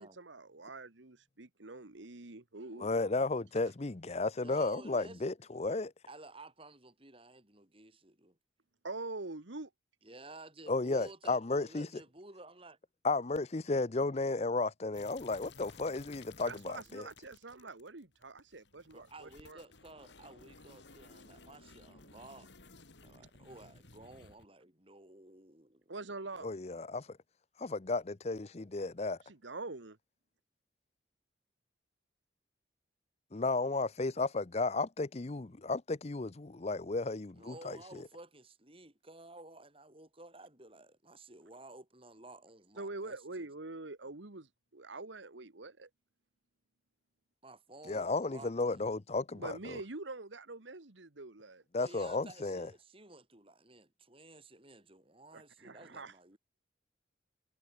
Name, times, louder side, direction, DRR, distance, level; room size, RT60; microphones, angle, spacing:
voice 1, 0.0-2.9 8.8-9.7 16.4-19.6 25.9-26.5 29.3-30.0 42.8-45.9 49.3-51.6 55.3-56.4, right 3 dB, 85° right, 1.7 m, -45 dB
voice 2, 2.8-5.9 10.7-11.9 13.0-17.1 26.4-27.2 27.6-29.2 33.3-38.0 47.9-49.8 51.7-52.7, left 3 dB, 35° left, 0.7 m, -34 dB
voice 3, 4.4-5.3 6.1-8.4 10.0-12.8 16.9-17.0 18.9-22.5 23.0-25.9 37.3-43.5 47.4-48.9 51.8-56.4, right 2 dB, 30° right, 5.5 m, -53 dB
sound 1, 14.9-24.5, left 3 dB, 75° left, 3.2 m, -57 dB
head